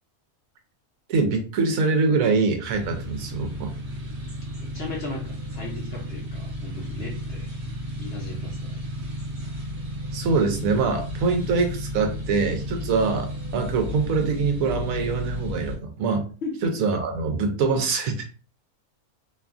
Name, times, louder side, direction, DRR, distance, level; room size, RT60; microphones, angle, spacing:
voice 1, 1.1-3.7 10.1-16.3 16.6-18.3, right 4 dB, 70° right, 5 dB, 1.0 m, -24 dB
sound 1, 2.7-15.8, equal, 50° right, 1.1 m, -33 dB
voice 2, 4.6-7.5 8.0-8.8 16.4-16.5, left 3 dB, 60° left, -2 dB, 0.7 m, -36 dB
2.7 x 2.3 x 2.4 m, 0.38 s
omnidirectional pair, 1.6 m